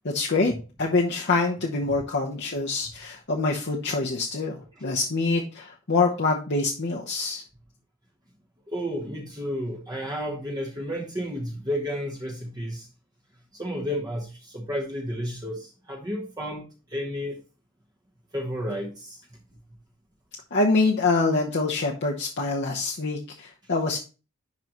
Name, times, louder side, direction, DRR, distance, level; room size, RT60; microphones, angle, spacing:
voice 1, 0.0-0.5 0.8-7.4 20.5-24.0, left 3 dB, 55° left, -2 dB, 0.9 m, -25 dB
voice 2, 8.7-12.9 13.5-16.6 16.9-17.4 18.3-19.2, equal, 20° right, -1 dB, 1.0 m, -32 dB
10.5 x 3.9 x 3.0 m, 0.33 s
head